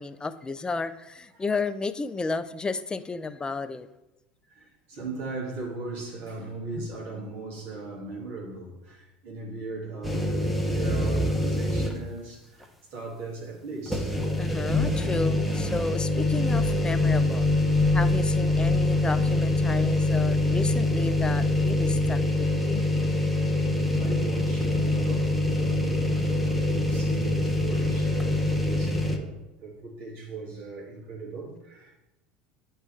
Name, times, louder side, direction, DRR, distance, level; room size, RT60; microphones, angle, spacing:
voice 1, 0.0-3.9 14.4-17.5 17.9-22.8, left 3 dB, 15° left, 0.4 m, -32 dB
voice 2, 4.5-14.3 24.0-32.0, right 3 dB, 55° right, 2.1 m, -38 dB
sound 1, 10.0-12.2 12.6-12.7 13.9-29.2, left 2 dB, ahead, 0.8 m, -24 dB
9.3 x 3.3 x 3.2 m
hypercardioid pair, 75°, 5 cm